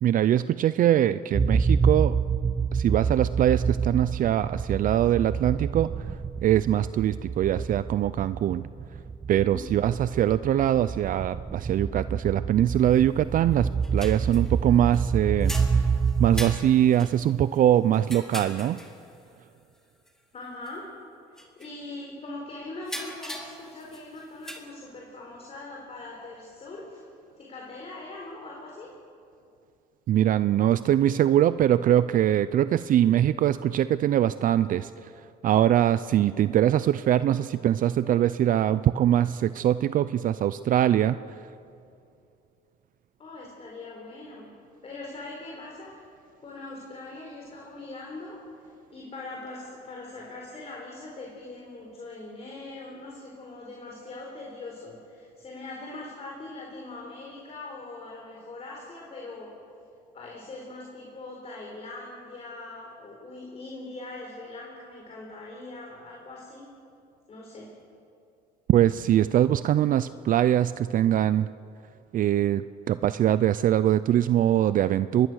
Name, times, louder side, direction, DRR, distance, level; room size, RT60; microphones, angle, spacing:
voice 1, 0.0-2.2 2.7-6.1 6.4-8.7 9.3-18.8 30.1-35.1 35.4-41.4 68.7-71.5 72.1-72.6 72.9-75.3, right 11 dB, 55° right, 14 dB, 0.5 m, -23 dB
sound 1, 1.3-17.0, right 5 dB, 25° right, 1.1 m, -27 dB
voice 2, 9.3-9.7 20.3-21.0 21.3-27.0 27.4-28.9 43.2-44.6 44.8-46.0 46.4-59.5 60.1-66.7 67.3-67.7, left 2 dB, 40° left, -1 dB, 4.4 m, -41 dB
sound 2, 12.9-13.0 13.5-15.0 15.4-19.2 20.1-20.2 20.4-20.7 21.4-21.7 22.8-24.6, equal, 5° left, 2.9 m, -40 dB
25.0 x 21.0 x 6.4 m, 2.6 s
cardioid pair, 110°, 17 cm